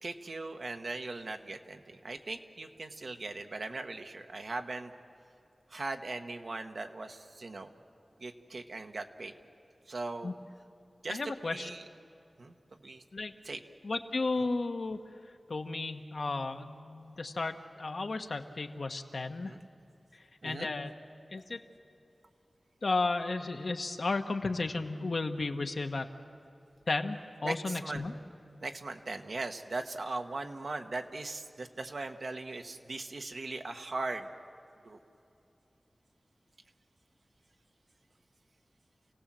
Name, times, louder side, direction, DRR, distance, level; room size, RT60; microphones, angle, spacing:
voice 1, 0.0-4.9 5.7-7.7 8.2-9.3 9.9-10.4 11.0-11.9 12.4-13.0 13.4-13.6 14.4-14.5 19.4-19.6 20.4-20.7 27.4-28.0 28.6-34.3 34.8-35.0, right 3 dB, 70° right, 5 dB, 1.3 m, -39 dB
voice 2, 11.1-11.7 13.1-13.3 13.8-15.0 15.5-19.5 20.4-20.9 21.3-21.6 22.8-26.1 26.9-28.1, left 3 dB, 70° left, 5 dB, 1.2 m, -33 dB
28.5 x 17.5 x 7.6 m, 2.7 s
wide cardioid pair, 70°, 0 cm